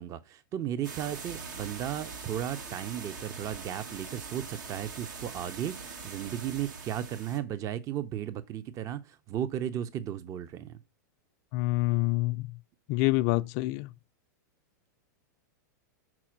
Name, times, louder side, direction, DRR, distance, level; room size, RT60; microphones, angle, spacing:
voice 1, 0.0-10.8, right 10 dB, 35° right, 0.6 m, -35 dB
sound 1, 0.8-7.4, right 4 dB, 75° right, 1.4 m, -42 dB
voice 2, 11.5-12.5 12.9-13.9, left 20 dB, 45° left, 0.4 m, -27 dB
6.1 x 4.2 x 5.9 m
hypercardioid pair, 115°, 10 cm